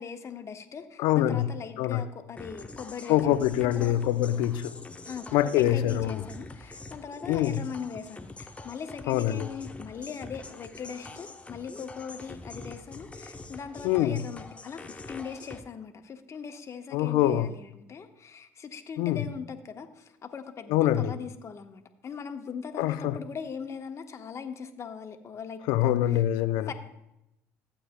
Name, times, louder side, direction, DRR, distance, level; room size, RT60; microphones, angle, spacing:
voice 1, 0.0-4.1 5.1-26.2 26.7-26.8, left 6 dB, 40° left, 6 dB, 1.2 m, -40 dB
voice 2, 1.0-1.5 1.8-2.0 3.1-4.8 5.3-6.2 7.3-7.6 9.1-9.5 13.8-14.2 16.9-17.5 19.0-19.2 20.7-21.1 22.8-23.1 25.7-26.7, left 13 dB, 70° left, 13 dB, 0.6 m, -24 dB
sound 1, 2.4-15.6, left 2 dB, 15° left, 0.8 m, -45 dB
14.5 x 8.5 x 2.2 m, 0.85 s
hypercardioid pair, 65°, 7 cm